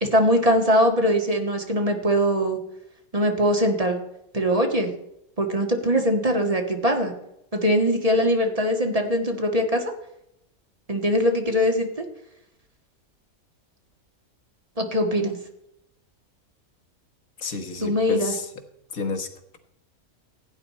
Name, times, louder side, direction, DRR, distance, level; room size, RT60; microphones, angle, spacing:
voice 1, 0.0-2.6 3.1-4.0 4.3-4.9 5.4-7.1 7.5-9.8 10.9-11.9 14.8-15.4 17.8-18.3, equal, 25° right, 3 dB, 1.7 m, -21 dB
voice 2, 17.4-18.5 18.9-19.3, left 4 dB, 70° left, 5 dB, 1.8 m, -30 dB
16.0 x 9.3 x 4.3 m, 0.80 s
omnidirectional pair, 1.5 m